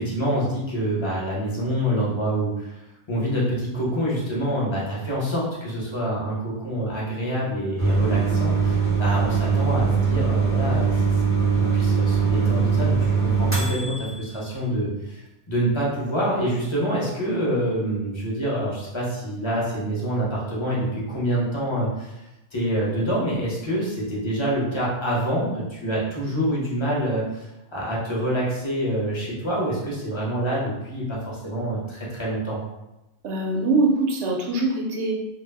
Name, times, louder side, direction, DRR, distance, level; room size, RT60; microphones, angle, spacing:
voice 1, 0.0-2.7 3.1-10.9 11.5-22.2 22.5-32.6, right 1 dB, 30° left, -6 dB, 0.6 m, -26 dB
sound 1, 7.8-14.3, right 5 dB, 15° right, 0.5 m, -21 dB
voice 2, 33.2-35.1, right 2 dB, 90° right, 0 dB, 0.9 m, -23 dB
2.2 x 2.0 x 3.3 m, 0.95 s
omnidirectional pair, 1.1 m